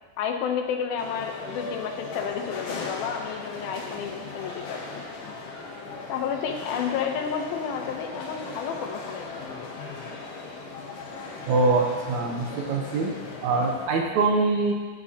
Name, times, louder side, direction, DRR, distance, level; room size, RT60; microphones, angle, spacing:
voice 1, 0.2-5.3 6.1-9.8, left 7 dB, 85° left, 4 dB, 2.7 m, -31 dB
sound 1, 1.0-13.9, left 3 dB, 55° left, 1.9 m, -38 dB
voice 2, 11.5-13.1 13.4-14.7, right 3 dB, 70° right, 1 dB, 1.9 m, -23 dB
15.0 x 8.7 x 2.8 m, 1.4 s
omnidirectional pair, 4.2 m